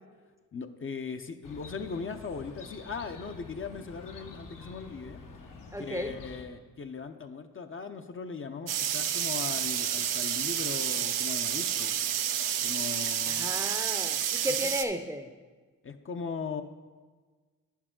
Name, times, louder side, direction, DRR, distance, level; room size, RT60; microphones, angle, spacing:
voice 1, 0.5-5.2 5.8-12.0 12.6-13.5 14.5-14.6 15.8-16.6, left 5 dB, 40° left, 7 dB, 0.6 m, -39 dB
Chirp tweet, 1.4-6.4, left 4 dB, 75° left, 1.0 m, -48 dB
voice 2, 5.7-6.2 13.3-15.3, equal, 10° right, 7 dB, 0.6 m, -34 dB
sound 1, 8.7-14.8, right 10 dB, 90° right, 0.5 m, -30 dB
8.9 x 7.3 x 3.7 m, 1.4 s
cardioid pair, 65°, 32 cm